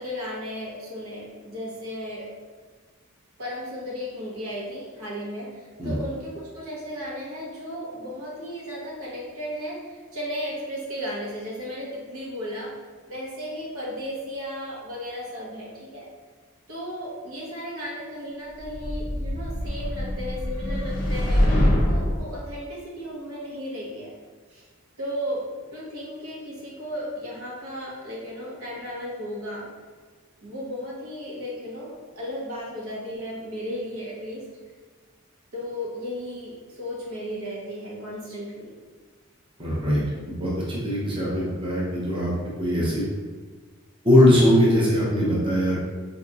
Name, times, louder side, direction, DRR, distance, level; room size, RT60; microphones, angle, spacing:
voice 1, 0.0-2.3 3.4-12.7 13.1-16.1 16.7-21.5 21.9-24.1 24.5-24.7 25.0-25.5 25.7-29.7 30.4-34.4 35.5-38.7, equal, 80° right, -5 dB, 1.0 m, -35 dB
sound 1, 18.6-22.3, left 1 dB, 40° left, 0.6 m, -24 dB
voice 2, 39.6-40.0 40.3-42.3 42.6-43.0 44.0-45.8, left 1 dB, 25° right, -6 dB, 0.6 m, -21 dB
3.9 x 2.8 x 2.4 m, 1.5 s
head